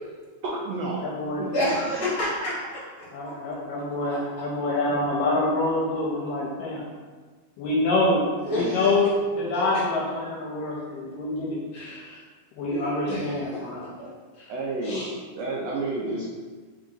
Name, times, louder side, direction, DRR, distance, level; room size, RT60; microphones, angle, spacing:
voice 1, 0.4-1.1 1.4-1.7 14.5-15.1 15.4-16.3, right 2 dB, 80° right, -4 dB, 1.5 m, -30 dB
voice 2, 1.0-1.4 3.1-6.8 7.6-11.6 12.6-13.8 14.8-15.1, left 2 dB, 80° left, -5 dB, 1.9 m, -26 dB
voice 3, 1.5-2.5 3.2-3.3 4.1-4.2 7.6-7.7 8.4-8.9 9.5-9.7 11.7-12.2 12.7-13.6 14.0-14.1 14.4-14.5, left 1 dB, 40° left, -8 dB, 1.5 m, -30 dB
4.4 x 3.8 x 2.6 m, 1.4 s
omnidirectional pair, 3.4 m